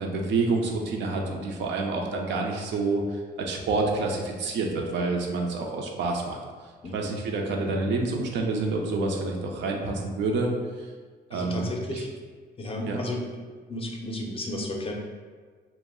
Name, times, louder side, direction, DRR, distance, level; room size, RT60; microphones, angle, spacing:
voice 1, 0.0-3.0 3.4-6.4 6.9-10.5 11.3-12.0 12.9-13.0, right 3 dB, 75° right, 1 dB, 0.5 m, -28 dB
voice 2, 11.3-12.1 12.6-13.3 13.7-14.9, left 1 dB, 30° left, 0 dB, 0.4 m, -33 dB
2.3 x 2.0 x 3.5 m, 1.5 s
cardioid pair, 95°, 19 cm